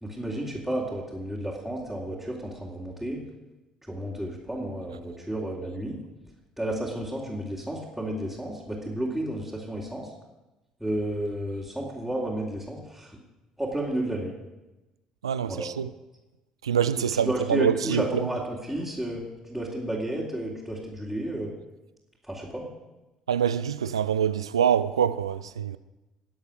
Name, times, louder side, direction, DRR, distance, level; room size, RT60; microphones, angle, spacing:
voice 1, 0.0-3.2 3.9-6.0 6.6-10.1 10.8-13.2 13.6-14.3 15.5-15.7 17.1-21.5 22.3-22.7, right 1 dB, ahead, 3.5 m, -32 dB
voice 2, 15.2-15.9 16.6-18.3 23.3-25.8, right 8 dB, 80° right, 0.4 m, -25 dB
20.5 x 8.1 x 6.5 m
figure-of-eight pair, 55°, 3 cm